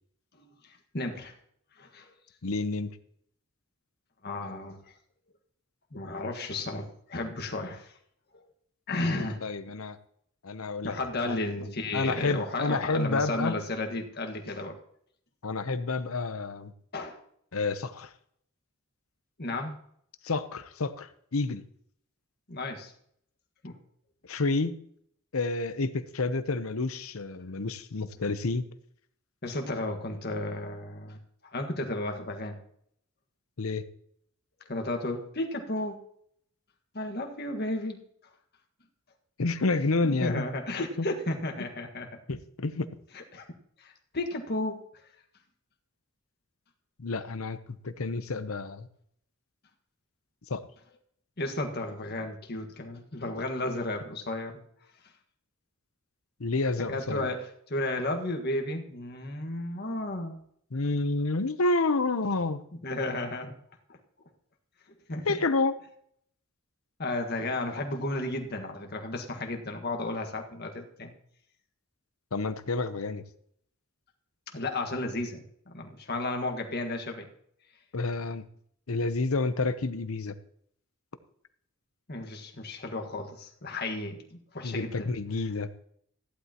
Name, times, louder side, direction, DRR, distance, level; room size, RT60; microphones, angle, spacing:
voice 1, 0.3-1.3 1.8-2.1 4.2-4.8 5.9-7.9 8.3-8.4 8.9-9.4 10.8-14.8 16.9-17.2 19.4-19.8 22.5-22.9 23.6-23.7 29.4-31.2 31.4-32.6 34.7-36.0 36.9-38.0 40.0-42.1 43.1-43.5 43.8-44.8 51.4-54.6 56.9-60.4 62.8-63.5 65.1-65.4 67.0-71.1 74.5-77.3 82.1-85.1, left 2 dB, 50° left, 3 dB, 1.7 m, -33 dB
voice 2, 2.4-2.9 9.4-10.0 10.4-11.0 11.2-11.4 11.9-13.6 15.4-16.7 17.5-18.1 20.2-21.6 24.3-24.7 25.3-28.7 33.6-33.8 39.4-40.5 41.0-41.1 42.3-42.9 47.0-48.9 50.5-50.6 56.4-57.3 60.7-62.6 65.2-65.7 72.3-73.2 77.9-78.5 78.9-80.3 84.6-85.7, left 3 dB, 85° left, 11 dB, 0.9 m, -29 dB
15.0 x 11.5 x 3.0 m, 0.67 s
head